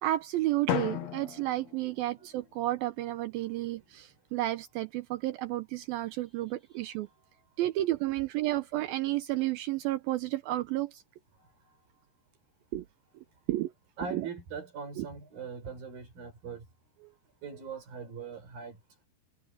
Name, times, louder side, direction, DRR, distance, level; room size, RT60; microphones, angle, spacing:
voice 1, 0.0-7.1 7.6-11.0 12.7-12.9 13.1-13.7 14.1-14.3 15.0-15.1, right 16 dB, 85° right, 2.1 m, -32 dB
Drum, 0.7-2.7, left 12 dB, 75° left, 1.5 m, -35 dB
voice 2, 14.0-16.6 17.0-17.1 17.4-18.8, right 5 dB, 55° right, 6.6 m, -41 dB
omnidirectional pair, 5.1 m